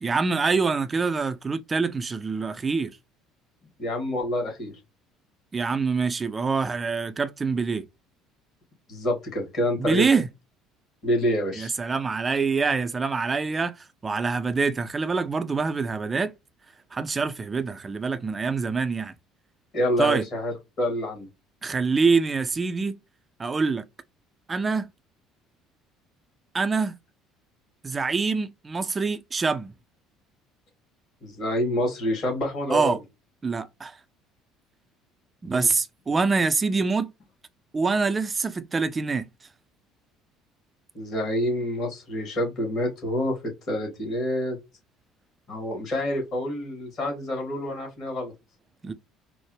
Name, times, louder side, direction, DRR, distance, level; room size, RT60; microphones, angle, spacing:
voice 1, 0.0-2.9 5.5-7.8 9.8-10.3 11.5-13.8 14.0-16.3 16.9-19.1 20.0-20.2 21.6-23.0 23.4-23.8 24.5-24.9 26.5-26.9 27.8-29.7 32.7-33.0 33.4-34.0 35.4-37.1 37.7-39.3 48.8-48.9, right 4 dB, 25° right, 0.5 m, -25 dB
voice 2, 3.8-4.7 8.9-10.1 11.0-11.7 19.7-21.3 31.2-33.0 35.5-35.7 40.9-43.4 43.7-44.6 45.5-48.3, left 1 dB, 50° left, 2.4 m, -27 dB
4.5 x 2.1 x 3.2 m
figure-of-eight pair, 55°, 0 cm